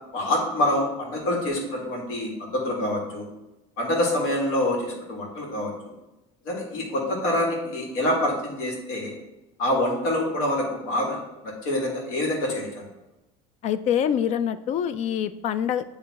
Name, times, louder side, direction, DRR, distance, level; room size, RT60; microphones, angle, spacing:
voice 1, 0.1-3.3 3.8-5.9 6.5-9.1 9.6-11.2 11.4-12.9, left 1 dB, 70° left, -1 dB, 2.0 m, -26 dB
voice 2, 13.6-15.8, left 9 dB, 50° left, 13 dB, 0.4 m, -25 dB
8.5 x 3.1 x 4.1 m, 1.0 s
cardioid pair, 120°, 15 cm